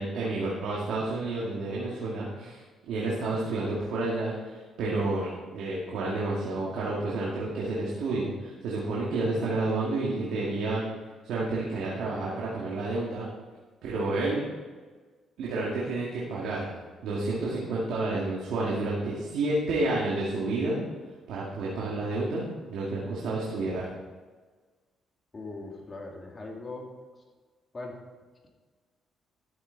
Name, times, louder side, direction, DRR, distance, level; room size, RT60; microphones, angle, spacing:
voice 1, 0.0-10.8 11.2-13.3 13.8-14.5 15.4-16.6 17.0-20.8 21.3-22.4 22.7-23.9, right 2 dB, 85° right, -5 dB, 2.2 m, -30 dB
voice 2, 25.3-26.9 27.7-28.0, left 2 dB, 30° left, 0 dB, 2.6 m, -40 dB
12.5 x 8.1 x 4.1 m, 1.4 s
cardioid pair, 90°, 0 cm